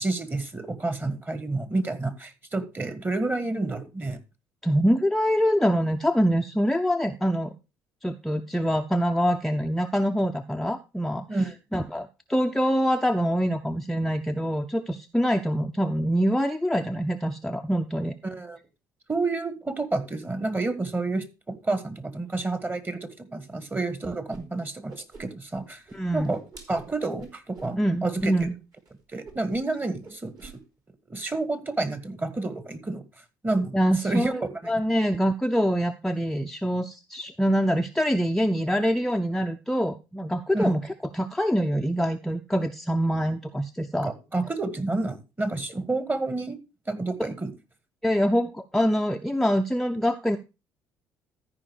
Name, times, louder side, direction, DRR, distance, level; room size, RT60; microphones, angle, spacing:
voice 1, 0.0-4.2 11.3-11.5 18.2-18.6 19.1-24.9 25.2-25.8 26.1-26.4 26.7-28.3 29.1-30.5 31.1-33.0 33.4-33.7 34.0-34.3 34.6-34.7 40.5-40.8 44.3-46.6 46.9-47.5, right 2 dB, 20° right, 12 dB, 1.8 m, -29 dB
voice 2, 4.6-7.5 8.0-11.4 11.7-18.2 25.9-26.3 27.8-28.5 33.7-40.9 41.1-44.1 47.2-47.3 48.0-50.4, equal, 5° left, 4 dB, 0.7 m, -25 dB
Whoosh swoosh swish, 24.3-24.4 24.7-25.6 25.9-27.8 28.2-28.5 28.7-28.9 29.2-29.8 30.0-30.6, right 4 dB, 45° right, 3.4 m, -46 dB
13.5 x 5.2 x 4.7 m, 0.28 s
hypercardioid pair, 55°, 9 cm